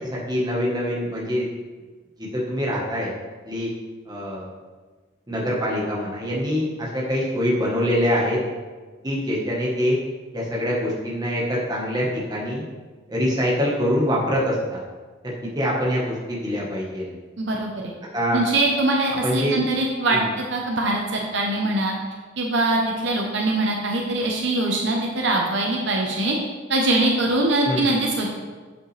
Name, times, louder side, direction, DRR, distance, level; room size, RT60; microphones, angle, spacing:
voice 1, 0.0-1.5 2.2-3.1 3.4-3.7 4.1-4.5 5.3-8.4 9.0-10.0 10.3-12.6 13.1-14.8 15.2-17.1 18.1-18.4 19.2-19.6 20.1-20.3 27.7-27.9, equal, 20° right, -4 dB, 1.2 m, -24 dB
voice 2, 17.4-17.7 18.3-20.2 20.5-21.9 22.4-26.4 26.7-28.3, right 2 dB, 60° right, -1 dB, 0.8 m, -22 dB
7.3 x 5.5 x 3.3 m, 1.4 s
head